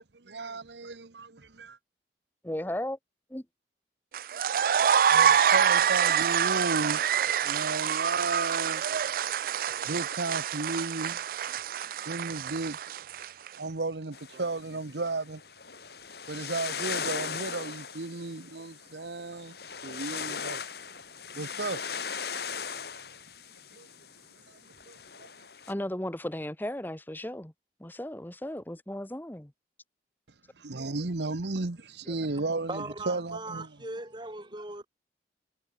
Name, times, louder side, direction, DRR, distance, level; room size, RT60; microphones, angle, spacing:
voice 1, 0.0-1.8 4.9-8.8 9.2-9.3 9.8-11.6 12.0-12.8 13.6-15.4 16.3-20.7 21.3-22.0 23.7-23.9 24.5-24.6 24.9-25.3 30.6-33.7, right 3 dB, 75° right, 1.1 m, -34 dB
voice 2, 2.4-3.0 3.3-3.4 25.7-27.5 27.8-29.5 32.1-32.2, left 1 dB, 10° left, 1.0 m, -35 dB
sound 1, 4.1-13.5, right 8 dB, 50° right, 0.4 m, -26 dB
sound 2, 14.1-25.7, left 6 dB, 60° left, 3.4 m, -39 dB
voice 3, 32.7-34.9, right 2 dB, 25° right, 5.1 m, -39 dB
head